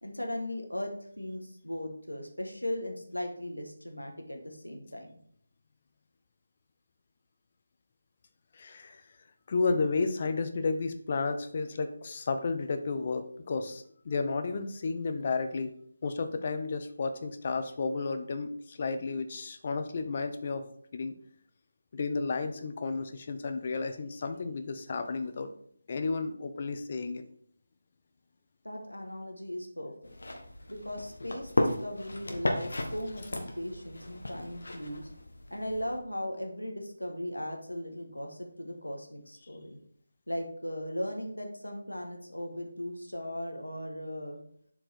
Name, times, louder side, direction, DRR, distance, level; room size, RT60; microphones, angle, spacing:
voice 1, 0.0-5.2 28.6-29.9 30.7-35.1 35.5-39.8 40.3-44.4, left 1 dB, 85° left, 2 dB, 1.5 m, -38 dB
voice 2, 8.5-9.0 9.5-15.7 16.0-20.6 20.9-21.2 21.9-25.5 25.9-27.2, left 4 dB, 35° left, 8 dB, 0.7 m, -32 dB
sound 1, 30.0-36.0, left 1 dB, 60° left, 1.4 m, -35 dB
7.4 x 4.5 x 4.4 m, 0.64 s
figure-of-eight pair, 155°, 0 cm